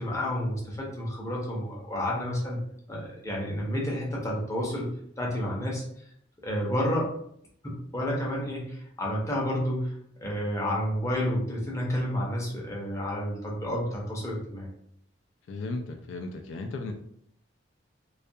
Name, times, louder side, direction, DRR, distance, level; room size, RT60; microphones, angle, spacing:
voice 1, 0.0-2.6 2.9-4.9 5.2-5.8 6.4-7.1 7.6-9.9 10.2-14.7, equal, 15° left, -4 dB, 0.6 m, -30 dB
voice 2, 15.5-16.9, left 2 dB, 70° left, 4 dB, 0.3 m, -35 dB
2.3 x 2.2 x 2.6 m, 0.70 s
head